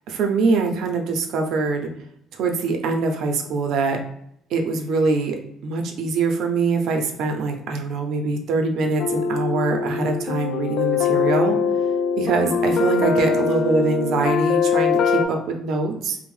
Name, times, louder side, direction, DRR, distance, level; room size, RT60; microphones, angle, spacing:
voice 1, 0.1-1.9 2.3-4.0 4.5-5.4 5.6-11.6 12.2-16.2, right 3 dB, 60° right, 4 dB, 0.4 m, -23 dB
sound 1, 9.0-15.3, left 5 dB, 50° left, 0.3 m, -22 dB
2.5 x 2.0 x 3.1 m, 0.74 s
cardioid pair, 165°, 0 cm